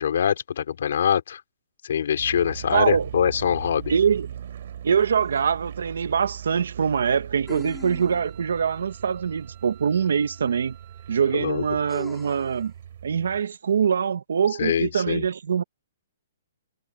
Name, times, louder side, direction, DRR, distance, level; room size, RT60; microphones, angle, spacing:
voice 1, 0.0-1.4 1.8-3.9 11.3-11.6 14.6-15.2, left 8 dB, 55° left, 3.2 m, -24 dB
sound 1, 2.2-13.4, right 9 dB, 45° right, 3.5 m, -40 dB
voice 2, 2.7-3.1 3.9-4.3 4.8-10.8 11.1-12.7 13.0-15.6, right 7 dB, 75° right, 1.4 m, -23 dB
sound 2, 5.4-5.5 7.5-8.4 10.3-10.4 11.9-12.6, left 4 dB, 5° left, 2.7 m, -40 dB
Wind instrument woodwind instrument, 7.4-12.8, right 23 dB, 20° right, 5.3 m, -55 dB
hypercardioid pair, 180°, 0 cm